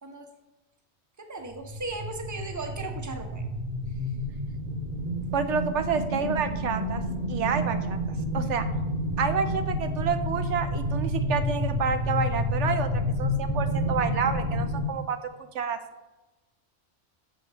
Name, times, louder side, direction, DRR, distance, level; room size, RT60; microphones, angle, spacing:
voice 1, 1.2-3.4 8.4-8.7, right 3 dB, 15° right, 4 dB, 0.9 m, -37 dB
sound 1, 1.5-14.8, left 1 dB, 40° right, 1.3 m, -29 dB
voice 2, 5.3-7.0 7.3-8.0 8.3-8.7 9.2-15.2 15.5-15.8, right 6 dB, 80° right, 9 dB, 1.1 m, -29 dB
14.0 x 6.0 x 3.5 m, 1.1 s
omnidirectional pair, 1.2 m